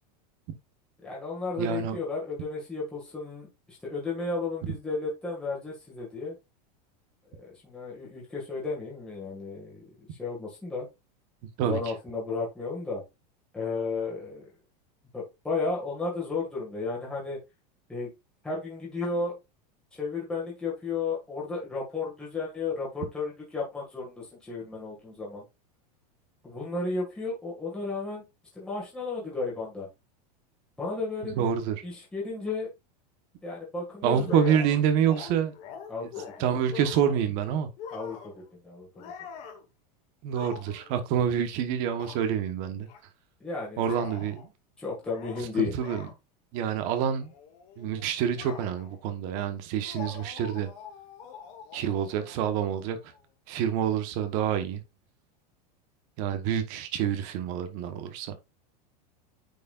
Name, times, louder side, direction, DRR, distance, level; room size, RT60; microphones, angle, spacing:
voice 1, 1.0-6.4 7.3-10.9 11.6-13.0 13.5-14.5 15.1-17.4 17.9-18.1 18.4-19.4 19.9-25.4 26.4-28.2 28.5-29.9 30.8-31.5 31.8-32.7 33.4-34.5 35.9-36.1 36.4-36.5 37.9-38.9 43.4-44.0 44.8-45.8, left 4 dB, 5° left, 1.9 m, -33 dB
voice 2, 1.6-2.0 11.6-11.8 31.2-31.8 34.0-35.5 36.4-37.7 40.2-42.9 43.8-44.5 45.6-46.0 46.5-47.3 47.8-50.7 51.7-53.0 53.5-54.8 56.2-58.4, right 8 dB, 35° right, 1.1 m, -27 dB
sound 1, 34.3-37.3 37.8-38.5 38.9-39.6 40.3-41.0 42.0-42.2 42.9-43.0 43.8-44.5 45.0-45.5 45.8-46.1 46.7-46.9 47.2-49.0 49.8-53.2, left 7 dB, 30° left, 1.3 m, -44 dB
9.2 x 4.7 x 2.4 m
supercardioid pair, 180°, 21 cm